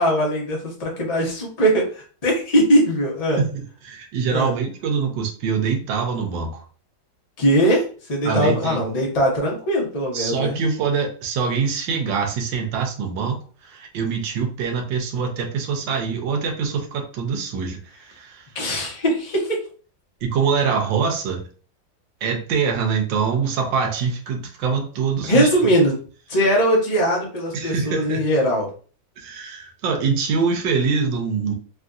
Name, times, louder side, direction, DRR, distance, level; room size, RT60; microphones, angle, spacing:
voice 1, 0.0-3.4 4.3-4.5 7.4-7.8 8.1-10.6 18.5-19.6 25.3-26.0 26.3-28.7, equal, 30° left, -2 dB, 0.7 m, -20 dB
voice 2, 3.4-6.6 8.2-8.8 10.1-18.5 20.2-21.4 22.2-25.7 27.5-28.2 29.2-31.5, right 5 dB, 80° right, 4 dB, 1.4 m, -24 dB
3.4 x 2.5 x 2.3 m, 0.40 s
omnidirectional pair, 2.0 m